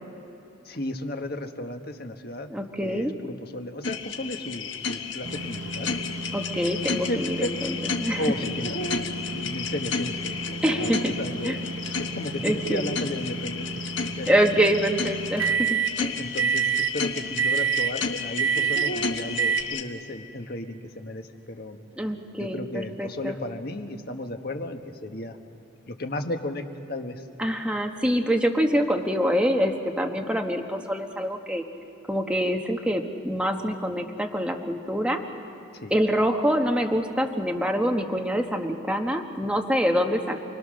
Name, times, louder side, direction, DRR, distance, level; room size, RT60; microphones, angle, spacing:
voice 1, 0.6-2.5 2.8-5.9 6.9-7.5 8.2-8.9 9.3-10.4 10.8-11.6 12.0-14.3 16.1-21.8 22.4-25.4 25.9-27.2 35.7-36.0, left 1 dB, 50° left, 5 dB, 1.4 m, -34 dB
voice 2, 2.5-3.1 6.3-8.3 10.6-11.1 11.4-11.6 12.4-12.9 14.3-16.2 22.0-23.3 27.4-31.6 32.1-35.2 35.9-40.4, equal, 5° right, 3 dB, 1.3 m, -25 dB
sound 1, 3.8-19.8, left 5 dB, 65° left, 1.4 m, -32 dB
sound 2, 5.2-15.9 16.4-16.9 17.4-17.9 18.4-18.9 19.4-19.6, right 7 dB, 80° right, 1.1 m, -30 dB
29.0 x 21.5 x 6.5 m, 3.0 s
head